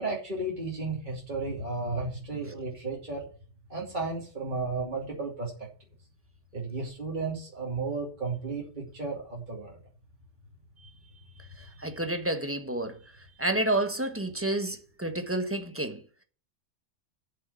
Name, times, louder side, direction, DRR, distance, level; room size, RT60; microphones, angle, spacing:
voice 1, 0.0-3.2 3.7-5.5 6.5-9.8 10.8-10.9 11.6-11.9 14.7-14.8, right 3 dB, 40° right, 3.1 m, -34 dB
voice 2, 11.8-12.9 13.4-16.0, right 1 dB, 10° right, 1.3 m, -29 dB
7.7 x 6.8 x 8.3 m
omnidirectional pair, 1.2 m